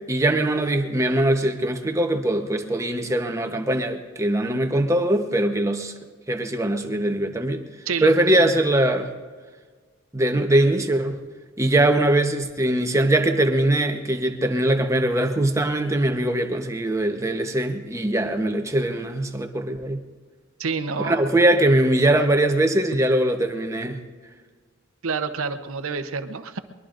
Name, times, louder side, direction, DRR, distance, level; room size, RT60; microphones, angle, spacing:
voice 1, 0.1-5.9 6.3-7.6 8.0-9.1 10.1-11.2 11.6-20.0 21.0-24.0, right 1 dB, 15° right, 5 dB, 1.0 m, -21 dB
voice 2, 7.9-8.6 20.6-21.3 25.0-26.6, right 5 dB, 90° right, 10 dB, 0.9 m, -28 dB
23.0 x 21.5 x 2.6 m, 1.5 s
head